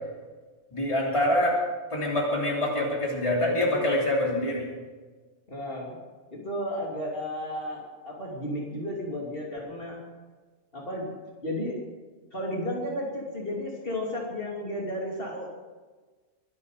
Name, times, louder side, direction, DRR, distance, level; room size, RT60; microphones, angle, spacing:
voice 1, 0.7-1.6 1.9-4.7, left 1 dB, 25° left, -2 dB, 3.2 m, -25 dB
voice 2, 5.5-6.0 6.3-10.0 10.7-11.1 11.4-11.8 12.3-15.5, left 1 dB, 50° left, -3 dB, 3.1 m, -33 dB
23.5 x 11.0 x 5.0 m, 1.3 s
omnidirectional pair, 1.2 m